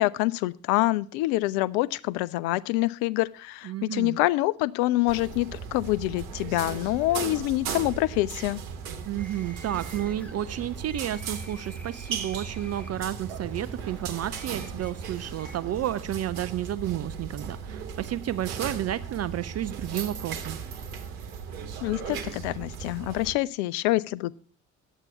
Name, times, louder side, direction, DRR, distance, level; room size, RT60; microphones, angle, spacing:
voice 1, 0.0-8.6 21.8-24.3, left 18 dB, 70° left, 18 dB, 0.5 m, -26 dB
voice 2, 3.6-4.2 9.1-20.6, right 12 dB, 40° right, 15 dB, 0.4 m, -31 dB
sound 1, 5.1-23.3, right 6 dB, 75° right, 1.1 m, -37 dB
sound 2, 9.2-15.8, left 1 dB, 5° left, 1.1 m, -48 dB
9.8 x 8.2 x 5.5 m, 0.44 s
hypercardioid pair, 50°, 41 cm